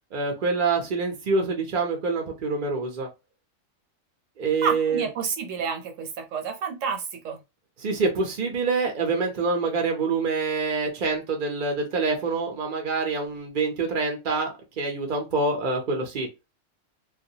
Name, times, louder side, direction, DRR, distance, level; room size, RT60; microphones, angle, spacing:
voice 1, 0.1-3.1 4.4-5.0 7.8-16.3, right 4 dB, 55° right, 0.6 m, -26 dB
voice 2, 4.6-7.4, right 6 dB, 75° right, 1.0 m, -29 dB
2.3 x 2.2 x 2.7 m
omnidirectional pair, 1.3 m